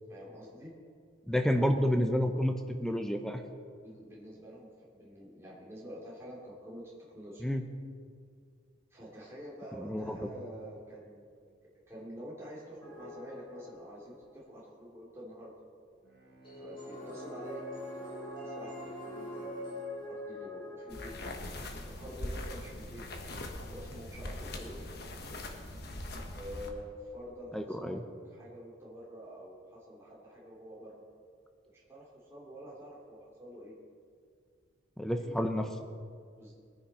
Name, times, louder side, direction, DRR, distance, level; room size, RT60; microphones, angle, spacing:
voice 1, 0.1-0.8 3.8-7.4 8.9-11.4 11.9-15.5 16.5-17.6 18.0-18.1 18.4-21.2 21.8-23.2 23.7-24.9 26.3-28.0 28.3-31.0 31.7-33.7 35.2-35.4 36.4-36.5, equal, 15° right, -7 dB, 2.8 m, -47 dB
voice 2, 1.3-3.4 7.4-7.7 9.8-10.3 27.5-28.0 35.0-35.7, equal, ahead, 5 dB, 0.7 m, -30 dB
sound 1, 12.8-14.1 16.4-21.7, left 1 dB, 25° left, 4.3 m, -43 dB
Bowed string instrument, 16.0-21.2, equal, 55° right, 1.6 m, -53 dB
sound 2, 20.9-26.7, left 1 dB, 50° left, 1.3 m, -41 dB
21.5 x 10.0 x 4.3 m, 2.2 s
head